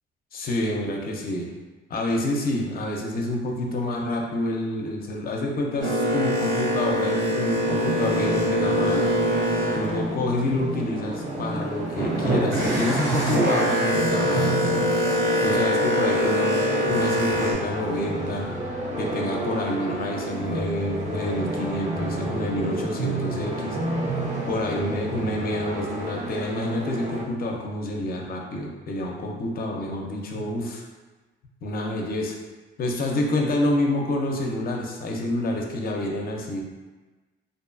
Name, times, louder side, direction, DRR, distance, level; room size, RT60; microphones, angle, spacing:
voice 1, 0.3-1.5 1.9-9.1 9.7-14.9 15.4-18.5 19.0-23.8 24.5-30.8 31.6-32.4 32.8-36.6, left 1 dB, 50° left, 0 dB, 0.5 m, -28 dB
Boat Water vehicle, 5.8-10.8 11.3-17.5, equal, 60° right, 1.1 m, -24 dB
sound 1, 7.6-27.2, right 1 dB, 35° right, 0.5 m, -30 dB
2.5 x 2.3 x 2.4 m, 1.2 s
cardioid pair, 90°, 20 cm